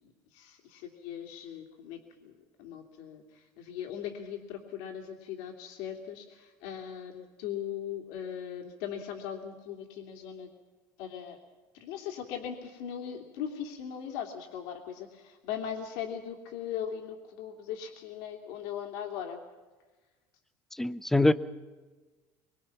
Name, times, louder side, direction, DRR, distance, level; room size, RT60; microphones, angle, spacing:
voice 1, 0.3-2.3 2.6-10.5 11.0-11.4 11.7-19.4, left 9 dB, 85° left, 2 dB, 2.9 m, -39 dB
voice 2, 20.7-21.3, left 2 dB, 5° left, 15 dB, 0.6 m, -24 dB
24.5 x 23.5 x 5.9 m, 1.3 s
cardioid pair, 150°, 9 cm